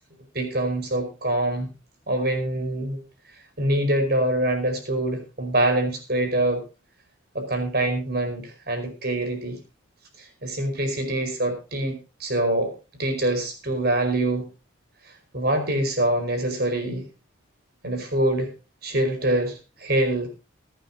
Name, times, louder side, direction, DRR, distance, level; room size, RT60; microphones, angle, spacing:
voice 1, 0.3-1.7 2.1-3.0 3.6-6.6 7.3-9.6 10.2-12.7 13.0-14.4 15.3-17.1 17.8-18.5 18.8-20.3, right 1 dB, 50° right, 5 dB, 4.9 m, -25 dB
22.0 x 9.1 x 2.8 m, 0.31 s
head